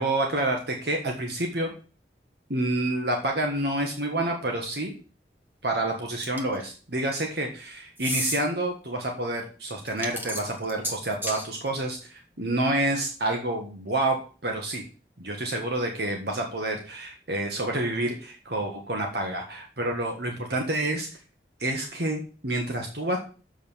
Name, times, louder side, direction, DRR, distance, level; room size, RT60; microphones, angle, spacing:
voice 1, 0.0-1.7 2.5-4.9 5.6-14.2 14.4-14.8 15.2-21.1 21.6-23.2, right 1 dB, 70° right, 2 dB, 1.5 m, -28 dB
sound 1, 6.2-6.6 8.0-8.4 9.9-11.5, equal, 10° right, 1.3 m, -31 dB
7.4 x 5.2 x 7.2 m, 0.37 s
head